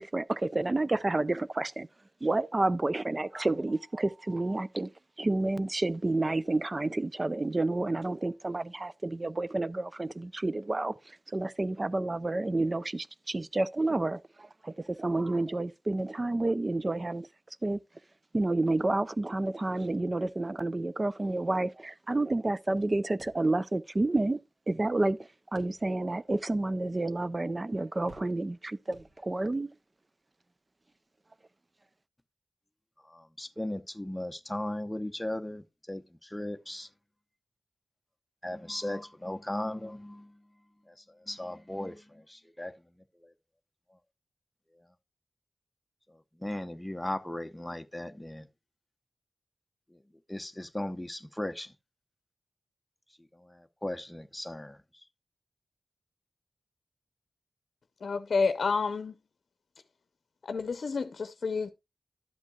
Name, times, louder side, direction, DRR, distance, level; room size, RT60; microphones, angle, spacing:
voice 1, 0.0-1.9 2.2-4.9 5.2-10.9 11.3-17.3 17.6-17.8 18.3-24.4 24.7-25.2 25.5-29.7, right 2 dB, 35° right, 0.5 m, -30 dB
sound 1, 23.2-24.1 24.4-24.5 25.5-26.2 26.7-26.8 28.1-28.6 28.9-29.6, right 2 dB, 60° right, 3.3 m, -56 dB
voice 2, 33.1-36.9 38.4-40.4 40.9-42.7 43.1-43.3 46.1-48.5 49.9-50.0 50.3-51.7 53.3-54.8, left 1 dB, 10° left, 0.8 m, -37 dB
voice 3, 58.0-59.1 60.4-61.7, left 4 dB, 85° left, 0.6 m, -29 dB
12.0 x 8.2 x 2.3 m
wide cardioid pair, 75°, 0 cm